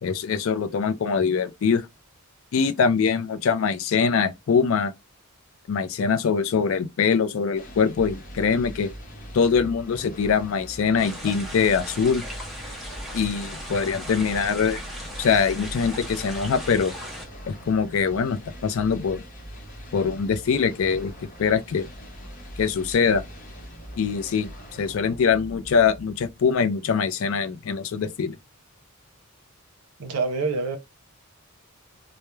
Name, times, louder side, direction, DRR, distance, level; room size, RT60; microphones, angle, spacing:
voice 1, 0.0-1.8 2.5-4.9 5.7-8.9 9.3-12.2 13.1-14.8 15.2-16.9 17.5-19.2 19.9-21.1 21.4-21.9 22.6-23.2 24.0-24.5 24.8-28.4, left 6 dB, 65° left, 0.4 m, -23 dB
sound 1, 7.5-26.6, equal, 40° left, 0.8 m, -42 dB
sound 2, 11.0-17.3, equal, ahead, 0.6 m, -37 dB
voice 2, 30.0-30.8, right 4 dB, 85° right, 0.6 m, -26 dB
2.3 x 2.0 x 3.0 m
head